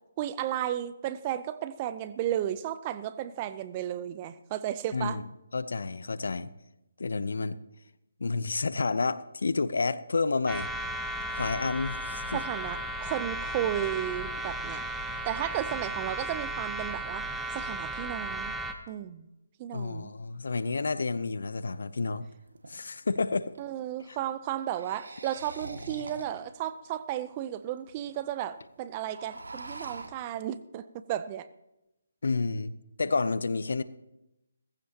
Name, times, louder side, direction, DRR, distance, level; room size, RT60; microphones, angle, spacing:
voice 1, 0.2-5.2 12.3-14.8 15.2-17.3 17.5-18.5 18.9-19.3 19.6-20.1 23.6-31.5, right 11 dB, 25° right, 0.6 m, -34 dB
voice 2, 4.9-5.2 5.5-6.5 7.0-7.6 8.2-10.7 11.3-12.4 19.7-22.3 22.7-23.5 24.1-24.2 32.2-32.7 33.0-33.8, left 4 dB, 70° left, 0.7 m, -30 dB
sound 1, 10.5-18.7, right 1 dB, ahead, 0.9 m, -35 dB
sound 2, 21.8-21.9 22.5-23.7 24.5-26.5 27.1-27.2 27.4-27.5 27.7-28.2 28.5-28.6 28.9-30.1, right 2 dB, 75° right, 2.0 m, -44 dB
18.0 x 15.0 x 2.9 m
figure-of-eight pair, 150°, 0 cm